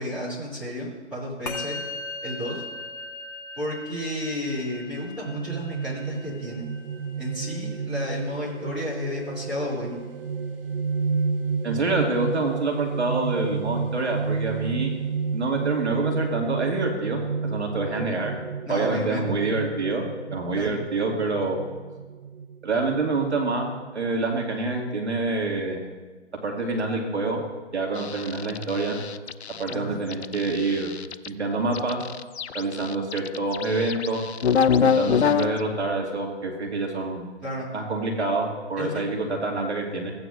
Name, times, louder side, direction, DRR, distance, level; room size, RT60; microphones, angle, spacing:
voice 1, 0.0-1.8 2.2-2.6 3.6-6.7 7.2-10.0 18.6-19.2 20.5-20.7 29.7-30.0 37.4-37.7 38.8-39.0, left 1 dB, 5° right, -11 dB, 3.0 m, -32 dB
Musical instrument, 1.5-11.0, left 2 dB, 35° left, 1.4 m, -40 dB
sound 1, 5.3-24.4, right 5 dB, 50° right, 0.5 m, -31 dB
voice 2, 11.6-14.9 15.3-18.3 18.7-20.0 20.3-21.6 22.6-25.9 26.4-27.4 27.7-29.0 29.6-30.9 31.2-32.0 32.5-34.2 34.7-37.3 37.7-40.1, right 3 dB, 65° right, 1 dB, 2.3 m, -27 dB
sound 2, 28.0-29.7 30.1-31.3 31.7-35.6, left 7 dB, 65° left, 0.5 m, -25 dB
15.5 x 9.1 x 2.6 m, 1.4 s
figure-of-eight pair, 150°, 35 cm